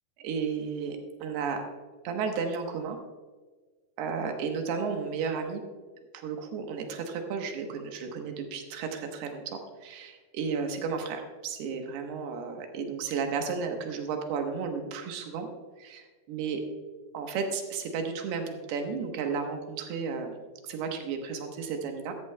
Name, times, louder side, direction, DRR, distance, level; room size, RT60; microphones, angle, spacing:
voice 1, 0.2-1.6 2.0-3.0 4.0-5.6 6.1-15.5 15.8-16.6 17.1-20.4 20.6-22.1, right 5 dB, 90° right, 4 dB, 3.2 m, -33 dB
14.0 x 13.5 x 2.2 m, 1.4 s
omnidirectional pair, 4.5 m